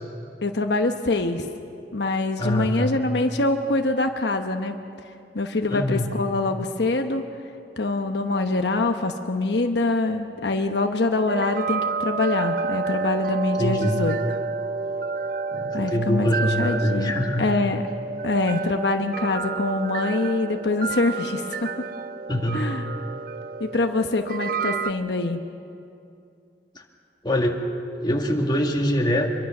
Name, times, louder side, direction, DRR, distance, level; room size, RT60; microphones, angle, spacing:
voice 1, 0.4-1.4 1.9-4.8 5.3-7.2 7.8-14.2 15.7-16.3 16.6-17.8 18.2-21.9 22.5-22.9 23.6-25.4, left 2 dB, 75° left, 5 dB, 1.0 m, -24 dB
voice 2, 2.4-2.9 5.7-6.1 13.6-14.0 15.5-17.5 22.3-22.7 26.8-26.9 27.2-27.6 28.0-29.3, left 1 dB, 25° left, 1 dB, 2.0 m, -24 dB
sound 1, 11.3-24.9, right 4 dB, 50° right, 0.5 m, -30 dB
25.5 x 23.0 x 6.1 m, 2.5 s
head